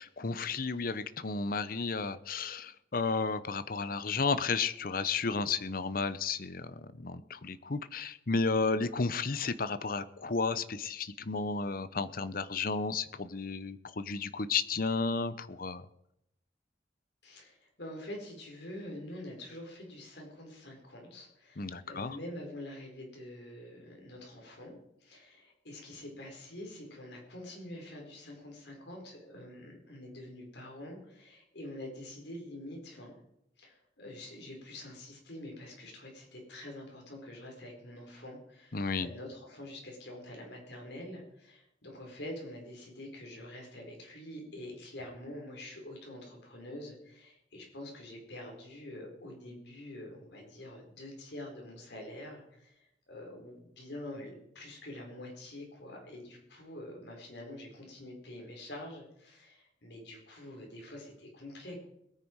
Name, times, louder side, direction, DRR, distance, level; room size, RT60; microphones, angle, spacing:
voice 1, 0.0-15.9 21.6-22.2 38.7-39.1, left 4 dB, 50° left, 14 dB, 0.8 m, -33 dB
voice 2, 17.2-33.2 33.6-61.8, left 1 dB, 65° left, 1 dB, 4.7 m, -46 dB
21.5 x 9.6 x 4.7 m, 0.79 s
head